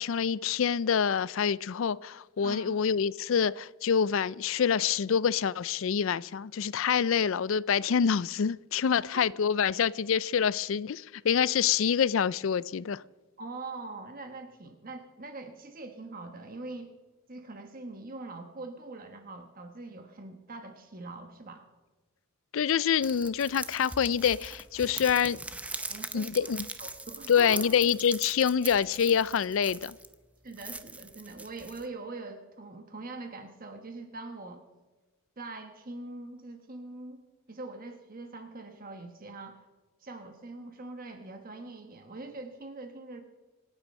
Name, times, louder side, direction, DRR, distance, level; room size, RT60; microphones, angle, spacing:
voice 1, 0.0-13.0 22.5-25.4 26.1-26.7 27.3-30.0, left 7 dB, 65° left, 20 dB, 0.4 m, -26 dB
voice 2, 2.4-2.8 13.4-16.9 17.3-21.6 25.9-26.5 26.8-27.7 30.4-34.6 35.4-37.2 37.5-39.7 40.0-43.2, right 2 dB, 40° right, 5 dB, 1.2 m, -43 dB
sound 1, 23.0-30.1 30.5-31.9, right 2 dB, 5° right, 0.6 m, -41 dB
26.5 x 8.9 x 5.4 m, 1.2 s
head